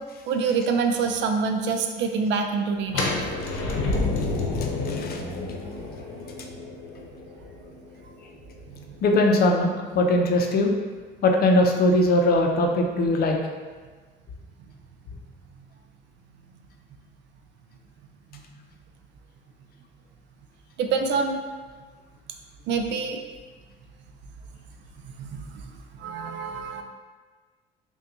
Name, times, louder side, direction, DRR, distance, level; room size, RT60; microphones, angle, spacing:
voice 1, 0.3-3.4 18.3-18.4 20.8-21.4 22.7-23.2 25.2-25.7 26.0-26.8, right 5 dB, 65° right, 5 dB, 0.5 m, -26 dB
sound 1, 2.9-8.7, left 3 dB, 85° left, 0.8 m, -29 dB
voice 2, 4.6-5.2 9.0-10.7 11.2-13.5, left 1 dB, 50° left, 2 dB, 0.6 m, -21 dB
5.5 x 2.3 x 2.6 m, 1.4 s
cardioid pair, 110°, 20 cm